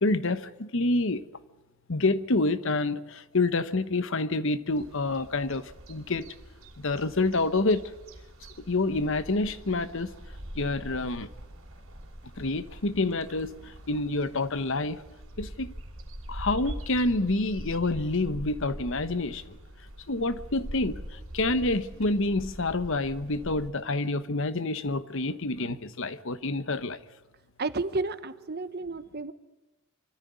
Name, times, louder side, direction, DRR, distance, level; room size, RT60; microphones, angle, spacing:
voice 1, 0.0-1.2 1.9-6.2 6.8-7.9 8.7-10.1 10.5-11.3 12.4-15.0 15.4-15.7 16.3-19.6 20.1-27.0, left 2 dB, 65° left, 13 dB, 1.0 m, -28 dB
sound 1, 4.7-23.7, right 1 dB, 70° right, 3.3 m, -43 dB
voice 2, 27.6-29.3, right 3 dB, 50° right, 12 dB, 1.1 m, -31 dB
25.0 x 14.0 x 9.5 m, 1.0 s
head